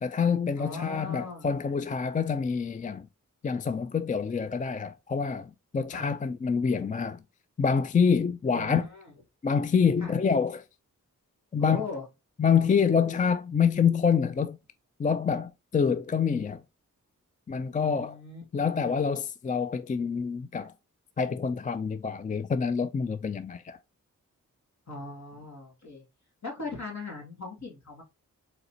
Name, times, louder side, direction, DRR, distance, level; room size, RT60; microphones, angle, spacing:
voice 1, 0.0-3.1 3.4-7.2 7.6-8.8 9.4-10.6 11.5-11.9 12.4-14.6 15.0-16.6 17.5-18.1 18.5-20.7 21.2-23.8, left 6 dB, 25° left, 0.3 m, -26 dB
voice 2, 0.6-1.5 5.9-6.2 8.5-9.1 10.0-10.2 11.6-12.0 17.8-18.6 24.9-26.0 26.4-28.0, left 3 dB, 55° left, 2.4 m, -39 dB
4.2 x 3.9 x 2.8 m
cardioid pair, 40°, 33 cm